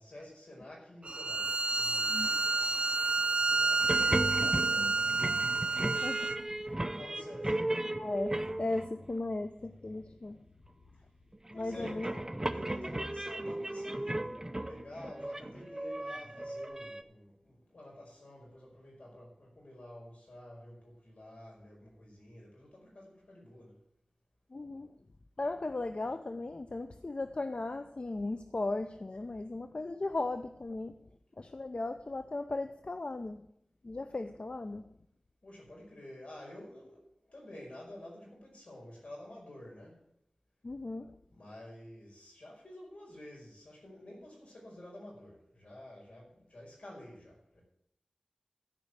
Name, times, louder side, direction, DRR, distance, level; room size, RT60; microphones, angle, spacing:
voice 1, 0.0-2.8 3.4-3.9 4.4-5.2 6.9-7.6 11.5-23.8 35.4-40.0 41.3-47.6, left 1 dB, 80° left, -3 dB, 5.4 m, -50 dB
Bowed string instrument, 1.1-6.4, right 3 dB, 55° right, 0.5 m, -29 dB
sound 1, 3.8-9.1 11.3-17.0, right 1 dB, 25° right, 0.7 m, -36 dB
voice 2, 5.8-6.3 8.0-10.4 11.5-12.1 24.5-25.0 25.4-31.0 31.4-33.5 33.8-35.0 40.6-41.1, left 2 dB, 55° left, 9 dB, 0.6 m, -37 dB
13.5 x 5.3 x 8.3 m, 0.72 s
wide cardioid pair, 45°, 2 cm